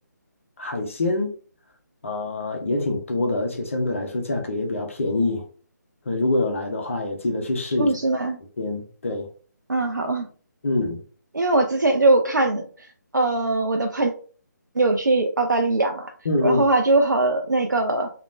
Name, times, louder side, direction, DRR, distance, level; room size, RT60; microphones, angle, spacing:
voice 1, 0.6-1.3 2.0-5.4 6.1-7.9 8.6-9.3 10.6-11.0 16.2-16.6, left 2 dB, 45° left, 0.6 m, -25 dB
voice 2, 7.8-8.4 9.7-10.3 11.3-12.9 13.1-14.1 14.8-16.1 16.4-18.1, right 2 dB, 80° right, 0.4 m, -21 dB
2.9 x 2.0 x 2.5 m
figure-of-eight pair, 150°, 10 cm